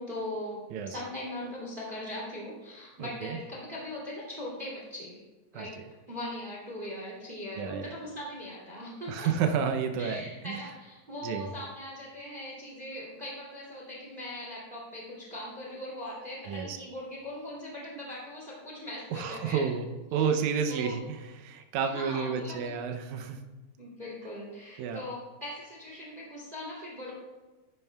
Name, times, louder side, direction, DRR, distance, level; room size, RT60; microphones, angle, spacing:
voice 1, 0.0-5.2 5.5-5.7 6.1-9.3 10.0-19.7 20.1-20.4 20.7-21.0 21.8-22.7 23.8-27.1, left 1 dB, 15° right, -4 dB, 1.8 m, -40 dB
voice 2, 0.7-1.0 3.0-3.4 5.5-5.7 7.6-7.9 9.1-10.6 11.2-11.5 16.5-16.8 19.1-23.4 24.8-25.0, right 6 dB, 85° right, 6 dB, 1.7 m, -31 dB
13.0 x 9.8 x 2.3 m, 1.2 s
omnidirectional pair, 4.2 m